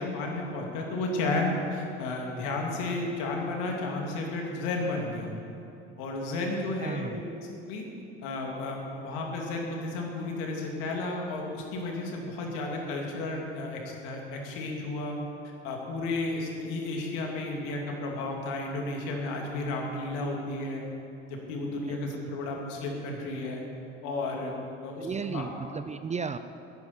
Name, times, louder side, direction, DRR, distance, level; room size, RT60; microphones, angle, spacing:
voice 1, 0.0-5.3 6.0-7.2 7.7-7.8 8.2-15.2 15.6-20.8 21.3-23.6 24.0-24.5 24.8-25.4, left 2 dB, 65° left, 0 dB, 2.8 m, -32 dB
voice 2, 6.8-7.2 21.9-22.0 25.0-26.4, right 5 dB, 20° right, 10 dB, 0.6 m, -34 dB
10.5 x 10.5 x 8.4 m, 2.9 s
hypercardioid pair, 65°, 34 cm